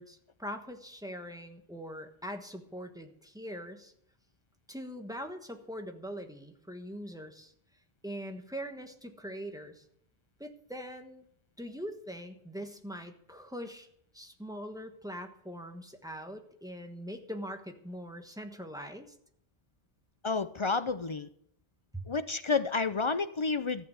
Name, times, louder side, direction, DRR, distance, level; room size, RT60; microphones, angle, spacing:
voice 1, 0.0-3.9 4.7-7.5 8.0-9.8 10.4-11.2 11.6-13.9 14.1-19.1 21.9-22.0, equal, 5° right, 5 dB, 1.2 m, -42 dB
voice 2, 20.2-21.3 22.1-23.9, left 4 dB, 45° left, 13 dB, 0.4 m, -30 dB
14.5 x 6.8 x 7.8 m, 0.71 s
omnidirectional pair, 1.0 m